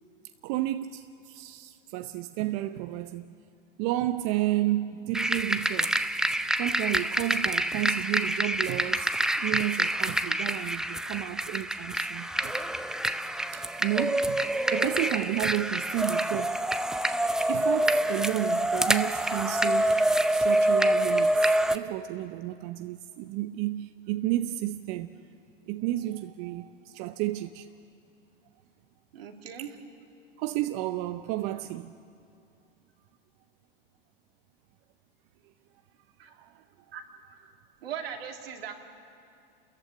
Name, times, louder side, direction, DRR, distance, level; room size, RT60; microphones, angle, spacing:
voice 1, 0.4-3.4 3.8-6.0 6.6-12.5 13.5-16.6 17.5-20.0 20.3-25.2 25.7-27.7 29.6-29.8 30.4-32.0 36.3-36.6, right 15 dB, 50° right, 0.7 m, -32 dB
sound 1, 5.1-21.8, right 1 dB, ahead, 0.6 m, -27 dB
voice 2, 29.1-29.7 36.2-36.3 36.9-37.0 37.8-38.8, right 8 dB, 80° right, 2.6 m, -38 dB
28.5 x 14.5 x 9.0 m
hypercardioid pair, 105°, 30 cm